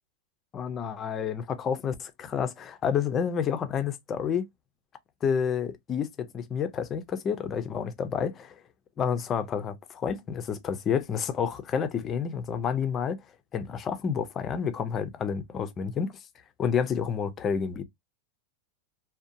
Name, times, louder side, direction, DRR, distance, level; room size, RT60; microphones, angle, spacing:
voice 1, 0.5-4.5 5.2-8.5 9.0-13.2 13.5-16.1 16.6-17.8, left 7 dB, 20° left, 0.4 m, -29 dB
2.6 x 2.1 x 2.5 m
supercardioid pair, 170°, 0 cm